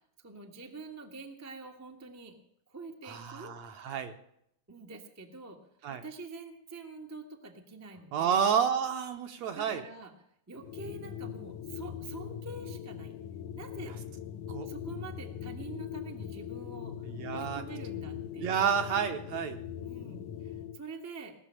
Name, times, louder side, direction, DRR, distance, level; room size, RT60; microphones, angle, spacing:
voice 1, 0.2-2.3 2.7-3.5 4.7-5.6 5.9-8.5 9.5-10.1 10.5-13.2 13.5-13.9 14.6-16.9 17.3-18.7 19.8-21.3, right 3 dB, 25° right, 3 dB, 0.3 m, -46 dB
voice 2, 3.1-4.1 5.8-6.0 8.1-9.8 14.5-14.7 17.1-17.6 18.4-19.6, right 7 dB, 65° right, 7 dB, 1.9 m, -30 dB
sound 1, 10.6-20.8, left 9 dB, 75° left, 2.0 m, -41 dB
19.0 x 6.7 x 9.9 m, 0.74 s
omnidirectional pair, 3.7 m